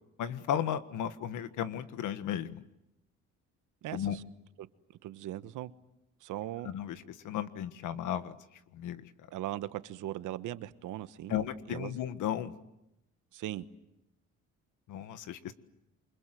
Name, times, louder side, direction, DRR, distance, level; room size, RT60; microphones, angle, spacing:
voice 1, 0.2-2.6 3.9-4.2 6.6-8.3 8.7-9.0 11.3-12.5 14.9-15.5, left 10 dB, 85° left, 1.6 m, -34 dB
voice 2, 3.8-4.2 4.6-4.7 5.0-5.7 6.2-6.7 9.3-12.0 13.3-13.7, right 14 dB, 90° right, 1.2 m, -39 dB
28.0 x 25.0 x 7.8 m
cardioid pair, 90°, 30 cm